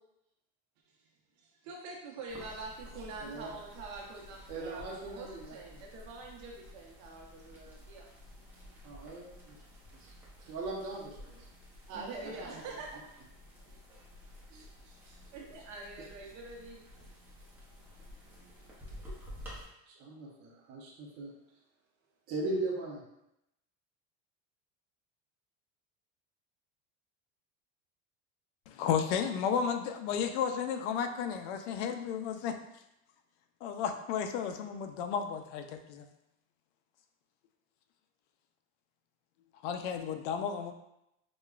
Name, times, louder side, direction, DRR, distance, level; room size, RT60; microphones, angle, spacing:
voice 1, 1.6-8.1 11.9-12.9 15.3-16.8, right 3 dB, 90° right, -1 dB, 1.0 m, -45 dB
sound 1, 2.3-19.6, left 1 dB, 5° right, 0.6 m, -52 dB
voice 2, 3.2-3.5 4.5-5.6 8.8-9.6 10.0-10.1 10.4-11.4 11.9-12.5 12.7-12.8 14.5-14.7 15.1-15.2 19.9-21.3 22.3-23.0, right 2 dB, 45° right, -3 dB, 0.8 m, -39 dB
voice 3, 28.7-32.5 33.6-36.0 39.6-40.7, left 7 dB, 80° left, 7 dB, 0.5 m, -33 dB
5.0 x 2.2 x 2.4 m, 0.85 s
cardioid pair, 165°, 34 cm